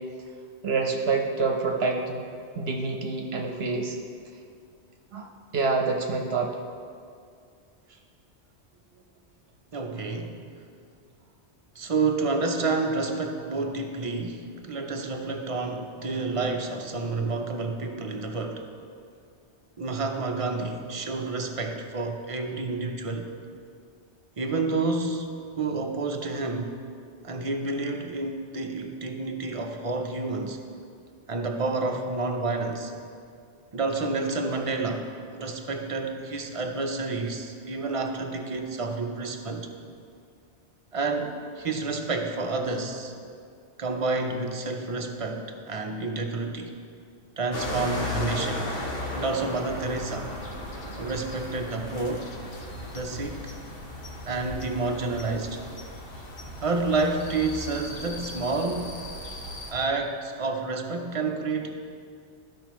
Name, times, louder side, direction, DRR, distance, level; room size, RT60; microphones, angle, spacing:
voice 1, 0.6-2.3 2.6-4.0 5.1-6.6, right 4 dB, 70° right, 2 dB, 1.0 m, -27 dB
voice 2, 9.7-10.4 11.8-18.7 19.8-23.3 24.4-25.3 25.6-26.7 27.2-30.6 31.3-32.9 33.7-39.7 40.9-43.1 43.8-46.7 47.4-48.7 49.1-50.3 51.0-52.3 52.9-53.5 54.3-55.6 56.6-58.9 59.7-61.7, right 3 dB, 40° right, 3 dB, 0.6 m, -29 dB
sound 1, 47.5-59.7, left 1 dB, 60° left, 1.2 m, -36 dB
13.5 x 5.4 x 3.0 m, 2.3 s
omnidirectional pair, 1.1 m